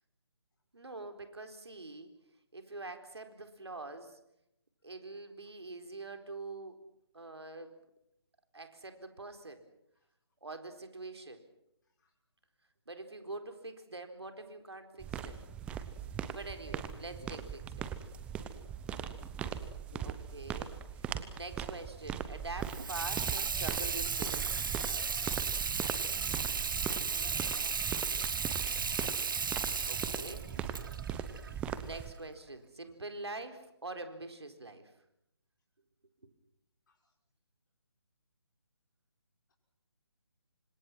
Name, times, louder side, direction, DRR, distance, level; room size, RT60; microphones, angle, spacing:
voice 1, 0.7-2.1 2.5-4.2 4.8-6.8 7.1-7.7 8.5-9.7 10.4-11.4 12.9-15.4 16.3-17.9 20.0-24.7 29.8-30.5 31.5-34.9, right 2 dB, 70° right, 6 dB, 4.2 m, -45 dB
sound 1, 15.0-32.1, right 8 dB, 10° right, 0.9 m, -40 dB
voice 2, 18.9-19.6 19.9-20.1 26.1-28.0 36.9-37.1, left 3 dB, 45° left, -1 dB, 6.1 m, -58 dB
Water tap faucet / Sink (filling or washing), 22.6-32.2, right 5 dB, 50° right, 1.4 m, -35 dB
28.5 x 26.0 x 6.1 m, 0.80 s
figure-of-eight pair, 150°, 14 cm